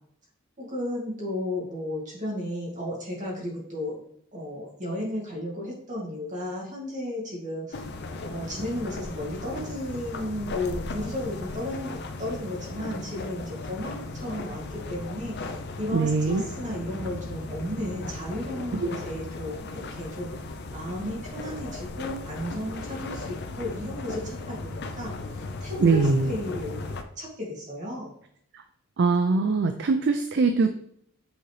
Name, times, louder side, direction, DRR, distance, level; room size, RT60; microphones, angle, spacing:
voice 1, 0.6-4.0 4.3-7.8 8.3-11.9 12.2-20.3 20.7-28.1, left 1 dB, 35° right, -4 dB, 2.3 m, -34 dB
sound 1, 7.7-27.0, left 2 dB, 55° left, 0.6 m, -37 dB
voice 2, 15.9-16.4 18.8-18.9 25.8-26.3 29.0-30.7, right 4 dB, 55° right, 8 dB, 0.4 m, -22 dB
7.9 x 3.9 x 3.3 m, 0.68 s
head